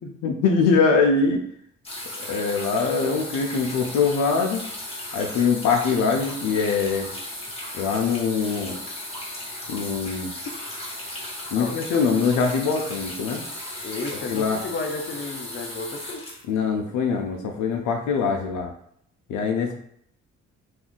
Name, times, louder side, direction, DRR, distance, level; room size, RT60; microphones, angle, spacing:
voice 1, 0.2-1.4 2.2-4.7 5.1-7.1 7.8-8.8 9.7-10.3 11.5-13.4 14.3-14.6 16.5-18.7 19.3-19.8, left 5 dB, 80° left, 3 dB, 0.5 m, -23 dB
sound 1, 1.8-17.2 18.1-18.2, left 1 dB, 20° left, 1.0 m, -36 dB
voice 2, 13.8-16.3, left 3 dB, 40° left, 3 dB, 0.6 m, -33 dB
2.7 x 2.4 x 3.7 m, 0.69 s
cardioid pair, 90°, 30 cm